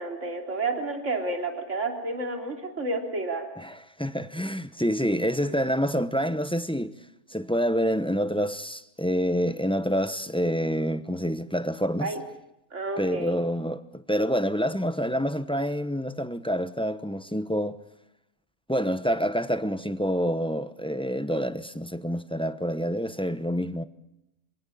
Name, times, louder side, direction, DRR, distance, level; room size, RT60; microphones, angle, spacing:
voice 1, 0.0-3.5 5.4-5.5 12.0-12.2 12.7-13.4, right 2 dB, 50° right, 3.5 m, -30 dB
voice 2, 3.6-6.9 7.3-12.1 13.0-17.8 18.7-23.8, equal, 5° left, 0.8 m, -27 dB
27.0 x 18.5 x 8.6 m
omnidirectional pair, 1.6 m